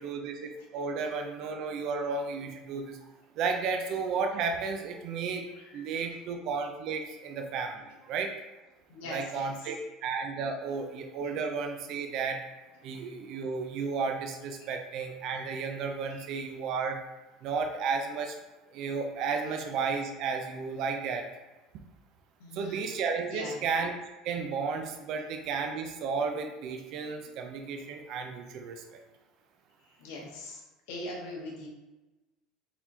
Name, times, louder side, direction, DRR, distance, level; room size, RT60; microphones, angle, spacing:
voice 1, 0.0-3.0 3.4-8.3 9.1-12.4 12.8-17.0 17.4-18.4 18.7-21.3 22.5-23.9 24.2-29.0, right 5 dB, 50° right, 4 dB, 0.4 m, -33 dB
voice 2, 5.5-5.9 8.9-9.7 16.1-16.2 22.4-22.9 23.3-23.6 29.8-30.6 30.9-31.7, left 1 dB, 80° left, -1 dB, 1.1 m, -42 dB
4.3 x 4.0 x 2.7 m, 1.1 s
cardioid pair, 160°, 0 cm